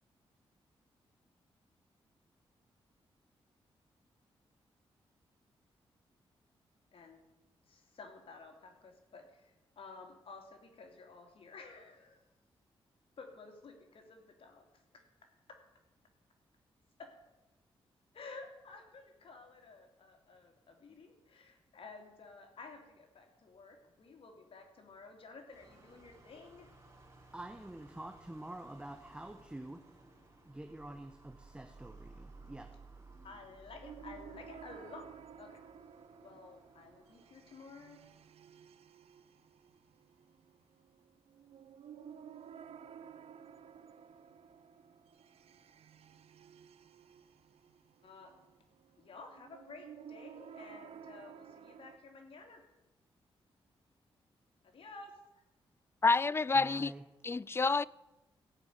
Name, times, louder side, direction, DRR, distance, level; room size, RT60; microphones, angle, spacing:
voice 1, 6.9-7.2 7.6-12.3 13.2-14.6 17.0-17.1 18.1-26.7 33.2-35.1 35.4-35.6 36.2-38.0 48.0-48.3 49.0-52.6 54.7-55.4, left 3 dB, 65° left, 2.9 m, -53 dB
sound 1, 25.5-38.3, right 3 dB, 30° right, 3.7 m, -58 dB
voice 2, 27.3-29.8 30.4-32.7 56.5-57.0, right 1 dB, 10° right, 1.1 m, -47 dB
sound 2, 33.8-52.0, right 8 dB, 75° right, 0.8 m, -54 dB
voice 3, 56.0-56.9 57.2-57.8, left 4 dB, 25° left, 0.3 m, -28 dB
15.5 x 5.5 x 9.3 m
cardioid pair, 75°, 10 cm